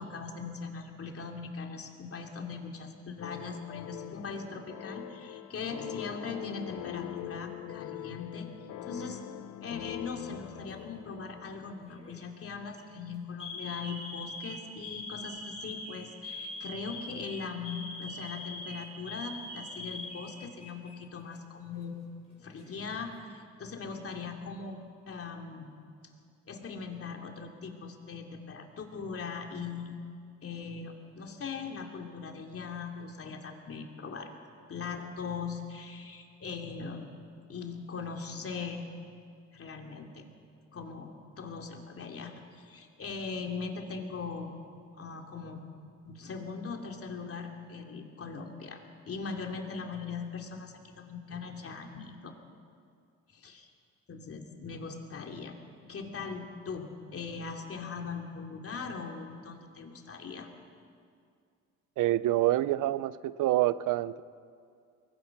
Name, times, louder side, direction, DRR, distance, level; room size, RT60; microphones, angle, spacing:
voice 1, 0.0-8.5 8.8-9.2 9.6-22.0 22.4-24.8 25.1-25.7 26.0-26.1 26.5-30.0 30.4-34.3 34.7-37.1 37.5-38.8 39.5-40.3 40.7-44.5 45.0-45.6 46.0-52.3 53.3-53.7 54.1-55.6 55.9-60.5, left 5 dB, 50° left, 2 dB, 3.0 m, -40 dB
sound 1, 3.2-12.2, left 14 dB, 80° left, 0.7 m, -43 dB
Alarm, 10.5-11.0 11.9-12.2 12.6-12.8 13.4-20.9 21.2-21.4 22.3-23.0, left 2 dB, 20° left, 7.2 m, -43 dB
voice 2, 62.0-64.2, right 15 dB, 85° right, 17 dB, 0.7 m, -27 dB
24.5 x 20.0 x 6.1 m, 2.3 s
cardioid pair, 90°, 30 cm